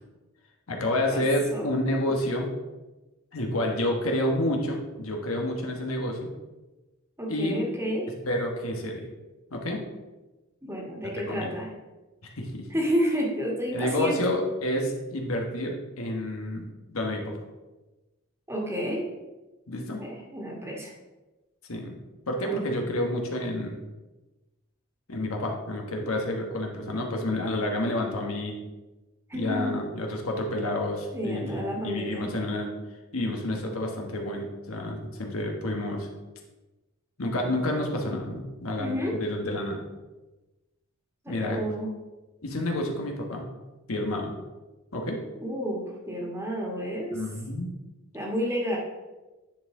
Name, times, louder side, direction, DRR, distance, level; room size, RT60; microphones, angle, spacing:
voice 1, 0.7-2.5 3.3-6.3 7.3-7.6 8.2-9.1 9.5-9.8 11.3-11.5 12.2-12.7 13.7-17.3 19.7-20.1 21.7-21.9 22.3-23.8 25.1-28.6 29.3-32.7 33.1-36.1 37.2-39.8 41.3-41.6 42.4-43.4 43.9-44.3 44.9-45.2 47.1-47.7, left 1 dB, 85° left, 2 dB, 1.3 m, -29 dB
voice 2, 7.2-8.1 10.6-11.7 12.7-14.2 18.5-19.1 20.0-20.9 22.4-22.6 26.0-26.1 29.3-29.8 31.1-32.3 38.8-39.2 41.2-41.9 45.4-47.1 48.1-48.8, equal, 15° right, -2 dB, 1.5 m, -30 dB
10.0 x 4.5 x 3.7 m, 1.1 s
head